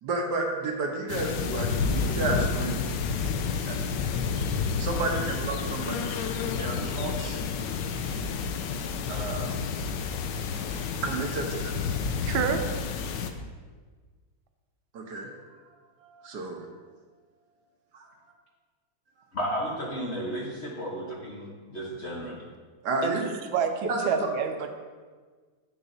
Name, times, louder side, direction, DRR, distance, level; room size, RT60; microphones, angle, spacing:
voice 1, 0.0-2.8 3.7-3.8 4.8-6.0 6.5-7.4 9.1-9.6 11.0-11.8 14.9-15.3 16.0-16.7 17.9-18.1 22.8-23.3 23.9-24.0, right 2 dB, 65° right, 2 dB, 1.4 m, -31 dB
sound 1, 1.1-13.3, left 5 dB, 75° left, 1.2 m, -30 dB
voice 2, 12.3-12.6 23.0-24.7, right 7 dB, 85° right, 6 dB, 1.5 m, -28 dB
voice 3, 19.3-22.4, equal, 40° left, -3 dB, 1.2 m, -33 dB
10.0 x 7.9 x 2.7 m, 1.5 s
omnidirectional pair, 2.2 m